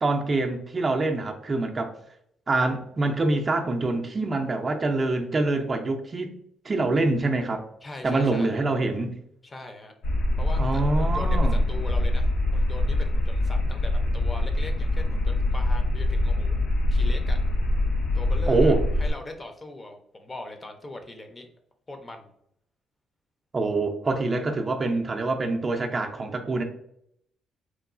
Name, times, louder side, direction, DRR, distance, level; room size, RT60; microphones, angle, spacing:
voice 1, 0.0-1.9 2.5-6.3 6.6-7.6 8.0-9.1 10.6-11.6 18.5-18.8 23.5-26.6, right 2 dB, 35° right, 3 dB, 0.4 m, -25 dB
voice 2, 7.8-8.6 9.4-9.9 10.4-16.6 16.9-17.4 18.1-21.5 21.9-22.3, left 2 dB, 30° left, 5 dB, 0.5 m, -40 dB
sound 1, 10.0-19.1, left 1 dB, 80° left, 0.5 m, -24 dB
3.0 x 2.3 x 2.4 m, 0.71 s
supercardioid pair, 70°, 0 cm